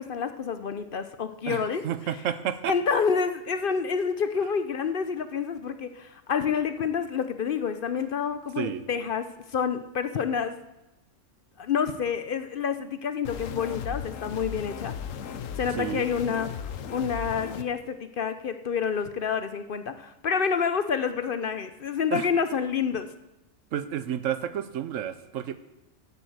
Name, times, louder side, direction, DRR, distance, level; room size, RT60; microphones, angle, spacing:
voice 1, 0.0-1.8 2.7-10.6 11.6-14.9 15.6-23.1, left 6 dB, 55° left, 10 dB, 0.7 m, -28 dB
voice 2, 1.4-2.7 8.6-8.8 15.8-16.1 22.1-22.3 23.7-25.6, right 10 dB, 85° right, 13 dB, 1.1 m, -31 dB
sound 1, 13.2-17.6, left 8 dB, 90° left, 1.1 m, -36 dB
11.0 x 7.4 x 7.9 m, 0.94 s
omnidirectional pair, 1.3 m